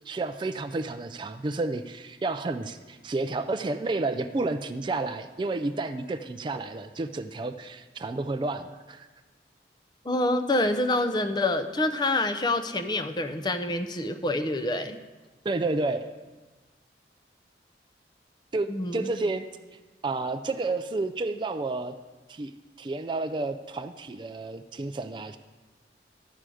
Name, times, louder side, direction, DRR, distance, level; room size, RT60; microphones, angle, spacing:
voice 1, 0.1-9.1 15.4-16.1 18.5-19.4 20.0-21.9 22.3-22.5 22.8-25.4, right 3 dB, 25° right, 8 dB, 0.3 m, -31 dB
voice 2, 10.0-15.0 18.7-19.1, left 2 dB, 25° left, 9 dB, 0.6 m, -27 dB
12.5 x 4.9 x 7.6 m, 1.2 s
head